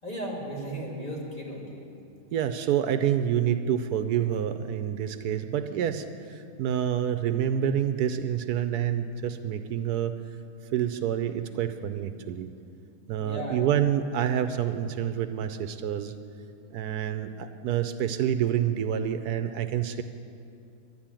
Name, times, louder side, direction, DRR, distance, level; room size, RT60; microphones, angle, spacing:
voice 1, 0.0-1.8 13.1-13.6, right 1 dB, 25° left, -4 dB, 3.1 m, -35 dB
voice 2, 2.3-10.1 10.7-12.5 13.1-16.1 16.7-20.0, right 9 dB, 80° right, 10 dB, 1.2 m, -28 dB
11.5 x 11.5 x 8.9 m, 2.5 s
omnidirectional pair, 1.7 m